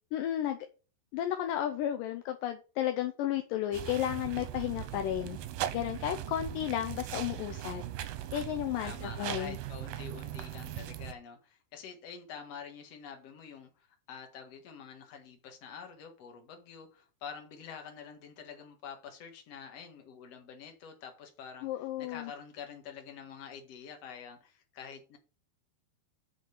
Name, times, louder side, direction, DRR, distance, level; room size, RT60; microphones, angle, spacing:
voice 1, 0.1-0.6 1.1-5.4 5.7-7.8 8.3-9.6 21.6-22.3, left 11 dB, 75° left, 6 dB, 2.0 m, -33 dB
sound 1, 3.7-11.1, right 12 dB, 75° right, 2.3 m, -39 dB
voice 2, 8.8-25.2, left 7 dB, 50° left, 4 dB, 2.4 m, -47 dB
6.5 x 5.9 x 7.1 m, 0.34 s
omnidirectional pair, 4.7 m